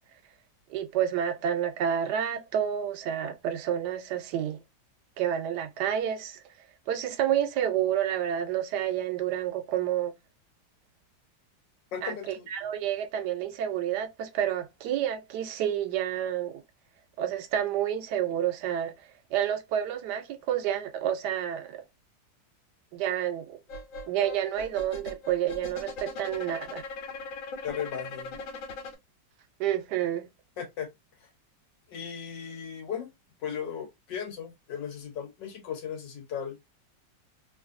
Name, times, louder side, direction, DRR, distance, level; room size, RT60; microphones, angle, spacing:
voice 1, 0.7-4.6 5.2-6.4 6.9-10.1 12.0-12.1 12.5-16.6 17.2-18.9 19.3-21.8 22.9-23.6 24.1-26.8 29.6-30.3, right 10 dB, 75° right, 1.1 m, -29 dB
voice 2, 11.9-12.5 27.6-28.4 30.6-30.9 31.9-33.1 33.4-36.6, left 8 dB, 75° left, 1.5 m, -36 dB
sound 1, 23.7-29.0, left 3 dB, 90° left, 1.6 m, -40 dB
3.1 x 2.6 x 2.5 m
omnidirectional pair, 2.0 m